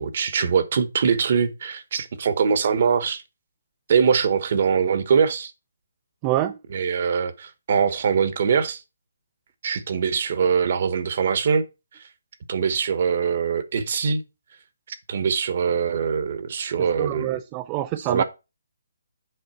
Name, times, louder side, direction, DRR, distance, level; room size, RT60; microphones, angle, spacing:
voice 1, 0.0-3.2 3.9-5.5 6.7-8.8 9.6-11.6 12.5-14.2 14.9-17.4 18.1-18.2, right 6 dB, 50° right, 1.1 m, -22 dB
voice 2, 6.2-6.6 16.8-18.2, right 14 dB, 20° right, 0.4 m, -26 dB
7.9 x 5.4 x 4.4 m
hypercardioid pair, 160°, 0 cm